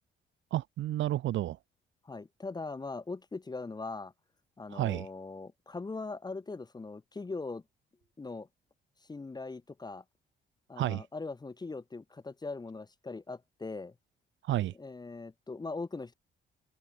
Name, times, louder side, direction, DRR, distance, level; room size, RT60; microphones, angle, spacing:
voice 1, 0.5-1.6 4.7-5.1 10.8-11.0 14.4-14.7, right 14 dB, 70° right, 0.7 m, -31 dB
voice 2, 2.0-4.1 4.6-7.6 8.2-8.5 9.1-10.0 10.7-13.9 14.8-16.1, left 3 dB, 20° left, 1.0 m, -40 dB
cardioid pair, 90°, 20 cm